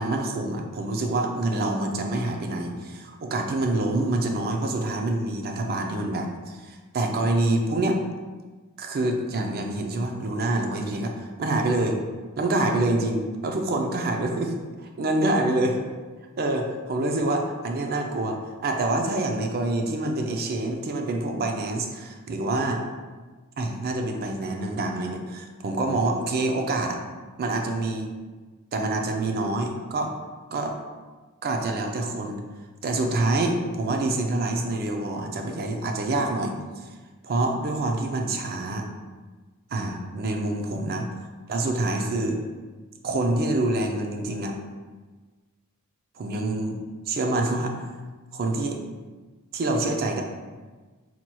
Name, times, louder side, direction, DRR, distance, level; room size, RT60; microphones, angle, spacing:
voice 1, 0.0-8.0 8.8-12.0 12.4-14.5 14.8-15.7 16.4-18.4 18.6-22.8 23.6-27.0 27.4-28.1 28.7-30.1 30.5-30.8 31.4-32.4 32.8-36.8 37.2-38.9 39.7-41.1 41.5-42.4 43.0-44.6 46.2-46.8 47.1-47.7 48.3-48.8 49.5-50.2, right 2 dB, 45° right, 3 dB, 0.4 m, -26 dB
4.2 x 2.9 x 2.2 m, 1.3 s
head